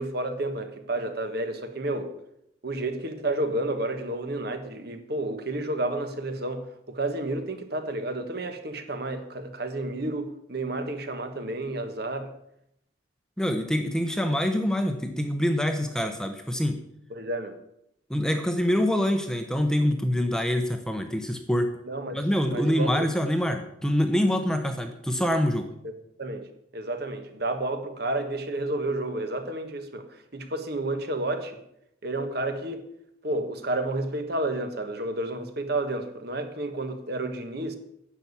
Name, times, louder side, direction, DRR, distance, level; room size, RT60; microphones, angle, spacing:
voice 1, 0.0-2.1 2.6-12.3 17.1-17.6 21.9-22.2 22.5-23.1 26.2-26.5 26.7-31.6 32.0-32.8 33.2-37.8, right 2 dB, 50° right, 1.4 m, -31 dB
voice 2, 13.4-16.8 18.1-21.7 22.1-25.7, equal, 5° left, 0.8 m, -25 dB
10.5 x 7.1 x 8.5 m
head